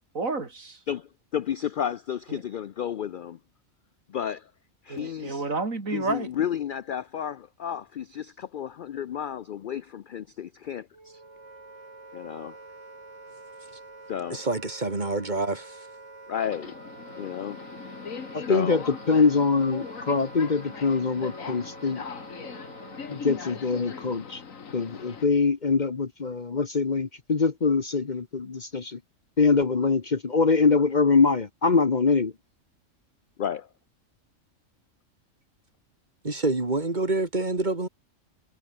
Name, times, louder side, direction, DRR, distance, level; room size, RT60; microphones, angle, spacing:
voice 1, 0.1-0.8 2.3-2.4 4.9-6.3, right 3 dB, 85° right, 3.7 m, -30 dB
voice 2, 0.9-3.4 4.1-4.5 4.8-5.4 5.9-11.2 12.1-12.6 14.1-14.4 16.3-16.7 17.2-17.6 18.4-18.8 33.4-33.7, left 9 dB, 65° left, 0.5 m, -32 dB
Wind instrument woodwind instrument, 10.9-23.6, right 3 dB, 65° right, 4.2 m, -47 dB
voice 3, 14.3-15.9 36.2-37.9, right 2 dB, 35° right, 3.0 m, -27 dB
Subway metro underground, 16.3-25.2, left 6 dB, 80° left, 2.1 m, -40 dB
voice 4, 18.3-22.0 23.1-24.4 24.7-29.0 29.4-32.3, left 4 dB, 40° left, 1.1 m, -23 dB
omnidirectional pair, 1.4 m